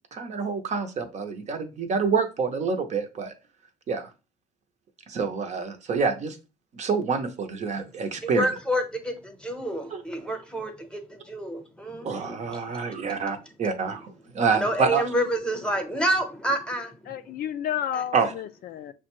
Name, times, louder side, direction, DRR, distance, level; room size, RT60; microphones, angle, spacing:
voice 1, 0.1-3.3 3.9-4.1 5.1-6.4 6.7-8.5 9.9-10.0 12.0-15.0 18.1-18.3, right 5 dB, 45° right, 0.7 m, -27 dB
voice 2, 8.2-12.8 14.5-17.1 17.9-18.0, equal, 5° left, 0.9 m, -29 dB
voice 3, 17.1-18.9, left 10 dB, 60° left, 0.4 m, -31 dB
6.1 x 2.2 x 2.9 m
cardioid pair, 110°, 17 cm